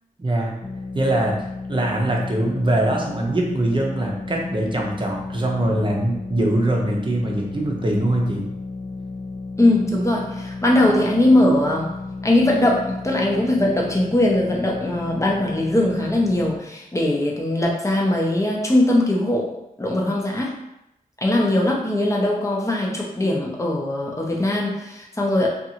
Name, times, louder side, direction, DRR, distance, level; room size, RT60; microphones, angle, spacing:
voice 1, 0.2-0.6 0.9-1.4 1.7-8.4, right 1 dB, 35° right, -1 dB, 0.6 m, -22 dB
sound 1, 0.6-16.6, left 3 dB, 65° left, 0.5 m, -33 dB
voice 2, 9.6-11.9 12.2-19.5 19.8-20.6 21.2-25.5, left 1 dB, 20° left, -2 dB, 0.6 m, -20 dB
2.6 x 2.4 x 2.8 m, 0.86 s
wide cardioid pair, 60°, 15 cm